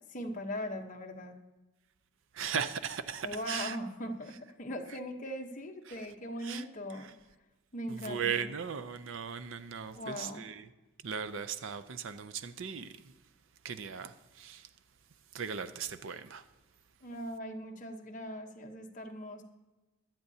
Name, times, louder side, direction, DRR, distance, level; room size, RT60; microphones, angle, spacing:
voice 1, 0.1-1.4 3.2-7.1 7.7-8.4 9.9-10.5 17.0-19.4, equal, 35° left, 1.0 m, -40 dB
voice 2, 2.3-3.8 5.9-6.0 6.4-6.6 7.9-10.7 11.0-13.1 13.6-14.7 15.3-16.4, right 7 dB, 60° right, 0.5 m, -37 dB
16.5 x 12.0 x 2.8 m
head